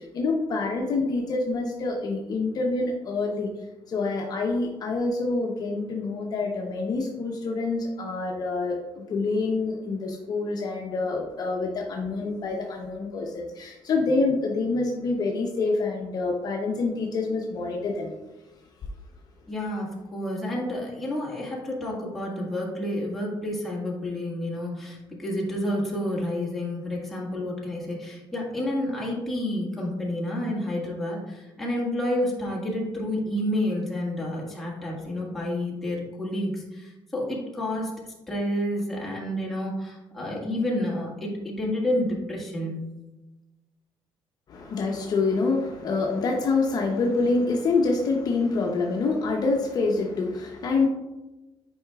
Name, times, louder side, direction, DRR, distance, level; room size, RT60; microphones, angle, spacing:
voice 1, 0.0-3.5 3.9-18.1 44.5-50.9, left 3 dB, 45° left, 1 dB, 0.7 m, -26 dB
voice 2, 19.5-42.9, left 1 dB, 5° left, -5 dB, 1.7 m, -29 dB
8.7 x 4.8 x 2.3 m, 1.1 s
cardioid pair, 145°, 9 cm